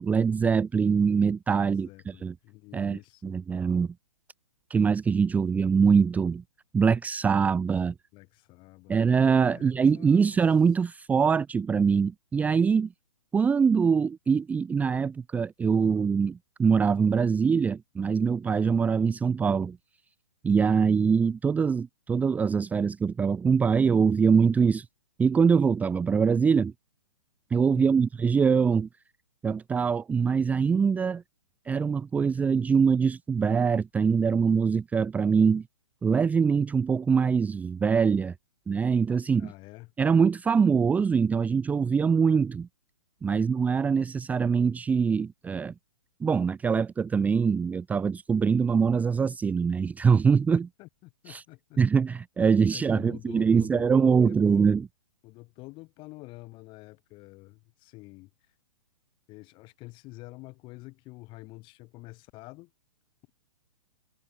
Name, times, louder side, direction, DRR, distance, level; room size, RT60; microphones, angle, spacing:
voice 1, 0.0-2.3 2.7-3.9 4.7-6.4 6.7-7.9 8.9-12.9 13.3-19.8 20.4-24.9 25.2-26.7 27.5-28.9 29.4-31.2 31.7-35.6 36.0-38.3 38.7-39.5 40.0-42.7 43.2-45.7 46.2-50.7 51.3-51.4 51.8-54.9, right 6 dB, 10° right, 0.8 m, -23 dB
voice 2, 1.5-3.4 8.1-9.0 9.4-10.4 27.7-28.0 39.4-39.9 43.3-43.5 50.8-51.8 52.7-54.8 55.2-58.3 59.3-62.7, left 22 dB, 30° left, 5.6 m, -47 dB
hypercardioid pair, 130°, 17 cm